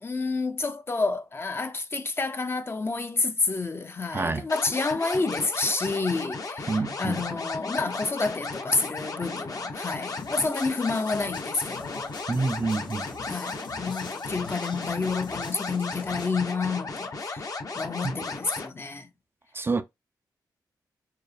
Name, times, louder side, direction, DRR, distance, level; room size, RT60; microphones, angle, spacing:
voice 1, 0.0-12.1 13.2-19.1, left 3 dB, 30° left, 0.6 m, -29 dB
voice 2, 4.1-4.4 6.7-7.2 12.3-13.1 19.5-19.8, right 3 dB, 30° right, 0.4 m, -27 dB
sound 1, 4.5-18.7, left 3 dB, 50° left, 1.0 m, -35 dB
sound 2, 10.2-16.4, left 4 dB, 80° left, 0.7 m, -44 dB
4.4 x 2.1 x 3.3 m
cardioid pair, 65°, 8 cm